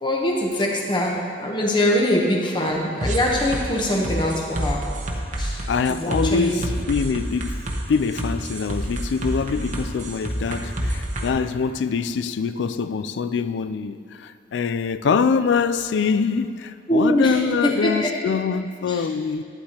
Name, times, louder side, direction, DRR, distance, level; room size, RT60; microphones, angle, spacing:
voice 1, 0.0-4.8 5.4-5.6 5.9-6.6 16.9-18.1 18.9-19.1, left 1 dB, 25° left, -2 dB, 0.9 m, -23 dB
sound 1, 3.0-11.3, right 1 dB, 45° right, 0.9 m, -28 dB
voice 2, 5.7-7.6 7.9-19.4, left 5 dB, 80° left, 13 dB, 0.3 m, -24 dB
11.5 x 9.5 x 2.9 m, 2.5 s
head